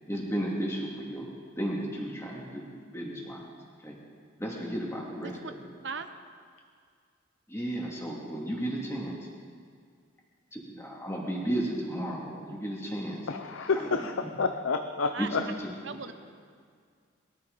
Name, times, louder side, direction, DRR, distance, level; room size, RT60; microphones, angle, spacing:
voice 1, 0.1-3.4 3.8-4.0 4.4-5.6 7.5-9.2 10.5-13.2 13.7-14.4 15.2-15.7 16.1-16.2, right 1 dB, 15° left, 2.5 m, -34 dB
voice 2, 5.2-5.5 5.8-6.1 15.1-15.3 15.8-16.1, right 5 dB, 70° right, 0.9 m, -37 dB
voice 3, 13.3-15.4, left 4 dB, 90° left, 0.6 m, -29 dB
21.5 x 13.0 x 4.0 m
head